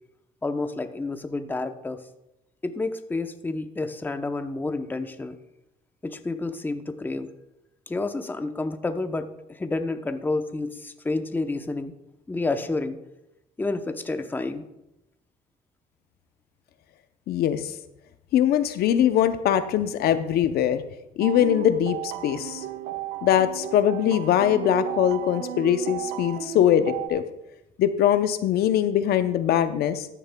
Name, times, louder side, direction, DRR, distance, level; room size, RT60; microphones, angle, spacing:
voice 1, 0.4-2.0 2.6-5.4 6.0-7.3 7.9-11.9 12.3-13.0 13.6-14.6, left 3 dB, 10° left, 8 dB, 0.7 m, -29 dB
voice 2, 17.3-17.7 18.3-20.8 21.2-22.6 23.2-27.2 27.8-30.1, left 10 dB, 70° left, 10 dB, 0.6 m, -22 dB
sound 1, 21.2-27.1, right 11 dB, 80° right, 0.8 m, -34 dB
14.0 x 10.0 x 2.2 m, 0.88 s
cardioid pair, 110°, 17 cm